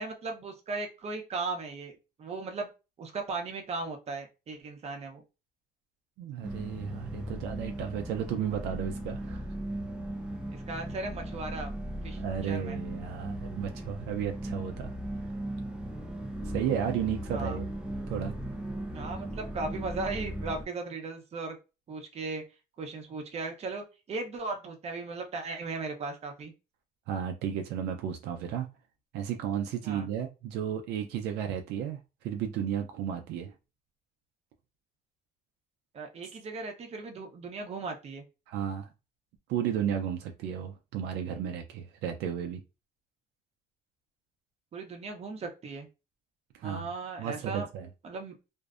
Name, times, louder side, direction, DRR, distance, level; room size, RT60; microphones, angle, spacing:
voice 1, 0.0-2.7 3.0-5.2 10.5-11.7 12.0-12.8 17.3-17.6 18.9-21.6 21.9-22.4 22.8-26.5 29.8-30.1 35.9-38.2 44.7-45.9 46.6-47.7 48.0-48.4, right 3 dB, 40° right, 0.7 m, -37 dB
voice 2, 6.2-9.4 12.2-14.9 16.4-17.7 18.1-18.4 27.1-28.7 29.1-32.0 32.2-33.5 38.5-38.9 39.5-42.6 46.6-46.9 47.2-47.9, right 9 dB, 85° right, 0.4 m, -33 dB
sound 1, 6.4-20.6, right 1 dB, 5° right, 0.4 m, -37 dB
2.6 x 2.0 x 2.4 m
cardioid pair, 110°, 17 cm